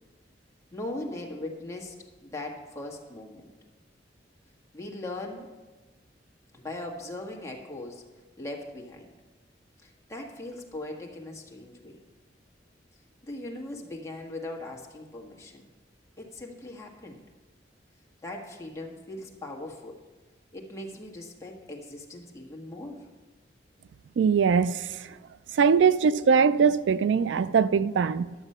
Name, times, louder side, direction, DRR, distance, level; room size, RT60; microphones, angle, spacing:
voice 1, 0.7-1.9 2.2-3.5 4.7-5.5 6.5-8.0 8.4-9.1 9.8-12.0 13.2-15.6 16.2-17.2 18.2-20.0 20.5-23.1, left 2 dB, 15° left, 1.5 m, -39 dB
voice 2, 24.2-25.1 25.5-28.3, right 6 dB, 75° right, 0.3 m, -22 dB
11.5 x 7.1 x 5.5 m
head